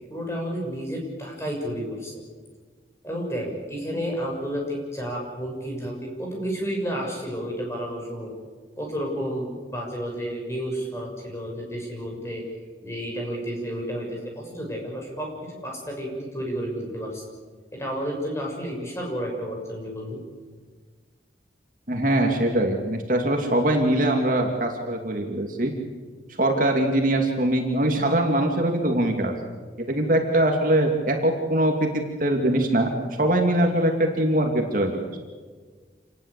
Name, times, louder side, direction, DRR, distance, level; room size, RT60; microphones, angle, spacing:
voice 1, 0.1-2.1 3.0-8.3 8.8-12.4 12.8-17.2 17.7-20.2, equal, 15° left, 0 dB, 6.6 m, -31 dB
voice 2, 21.9-25.7 26.4-29.3 29.8-35.0, right 1 dB, 50° right, 2 dB, 2.6 m, -22 dB
27.5 x 19.5 x 8.3 m, 1.5 s
head